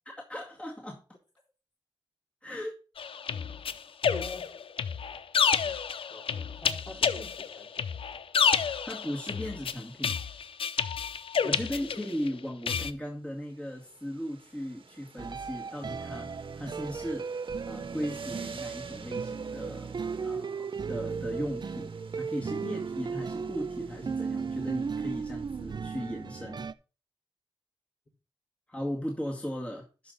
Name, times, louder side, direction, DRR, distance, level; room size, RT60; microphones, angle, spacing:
voice 1, 0.1-1.0 2.4-2.7 8.9-10.2 11.4-16.3 16.6-17.4 17.7-19.9 20.2-26.7 28.7-30.1, equal, 15° left, 2.1 m, -37 dB
sound 1, 3.0-12.3 12.7-12.9, left 6 dB, 85° left, 0.5 m, -29 dB
voice 2, 4.0-4.6 5.6-5.8 6.1-8.0 11.4-11.9, left 2 dB, 50° left, 4.4 m, -46 dB
sound 2, 13.1-26.4, right 4 dB, 75° right, 1.6 m, -53 dB
sound 3, 15.2-26.7, right 5 dB, 55° right, 0.5 m, -35 dB
12.0 x 5.5 x 4.0 m
cardioid pair, 65°, 9 cm